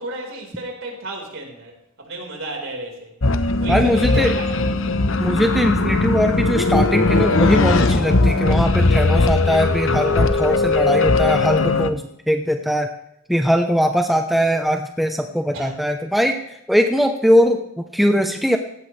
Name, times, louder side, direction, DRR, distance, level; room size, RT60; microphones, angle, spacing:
voice 1, 0.0-3.1 3.6-4.7 15.5-15.7, right 2 dB, 60° right, 1 dB, 4.8 m, -33 dB
sound 1, 3.2-11.9, left 3 dB, 60° left, 1.0 m, -18 dB
voice 2, 3.7-4.3 5.2-12.9 13.3-16.4 16.7-18.6, equal, ahead, 4 dB, 0.9 m, -20 dB
18.0 x 17.0 x 3.4 m, 0.77 s
head